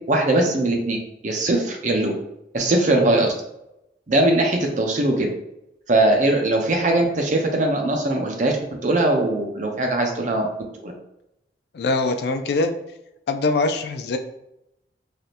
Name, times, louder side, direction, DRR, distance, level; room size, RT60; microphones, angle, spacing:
voice 1, 0.1-1.0 1.2-2.1 2.5-3.3 4.1-5.3 5.9-8.5 8.8-10.5 10.8-10.9, right 2 dB, 45° right, 2 dB, 0.5 m, -20 dB
voice 2, 11.7-12.7 13.3-14.2, left 3 dB, 60° left, 7 dB, 0.3 m, -22 dB
3.3 x 2.7 x 2.5 m, 0.85 s
head